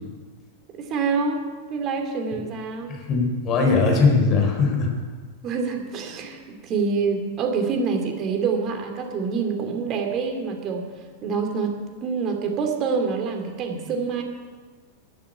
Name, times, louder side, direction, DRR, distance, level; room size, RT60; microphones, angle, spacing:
voice 1, 0.8-1.4 1.7-2.9 5.4-10.9 11.2-14.2, right 5 dB, 35° right, 4 dB, 2.7 m, -26 dB
voice 2, 2.9-4.9, left 4 dB, 35° left, 2 dB, 4.0 m, -20 dB
12.5 x 10.5 x 8.8 m, 1.5 s
figure-of-eight pair, 90°, 0 cm